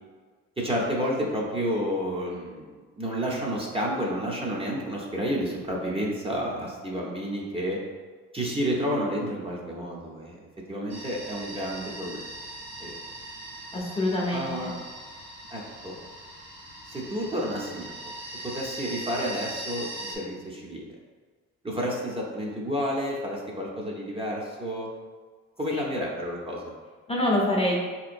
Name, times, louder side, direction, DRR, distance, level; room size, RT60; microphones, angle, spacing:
voice 1, 0.6-7.8 8.3-12.2 12.8-13.0 14.3-14.8 15.5-15.9 16.9-17.9 18.4-20.9 21.6-24.9 25.6-26.7, equal, 20° right, -3 dB, 0.6 m, -30 dB
sound 1, 10.9-20.2, right 1 dB, 60° right, 1.2 m, -40 dB
voice 2, 13.7-14.7 25.7-25.8 27.1-27.8, left 1 dB, 20° left, -2 dB, 0.6 m, -26 dB
4.1 x 2.9 x 2.5 m, 1.4 s
cardioid pair, 90°, 30 cm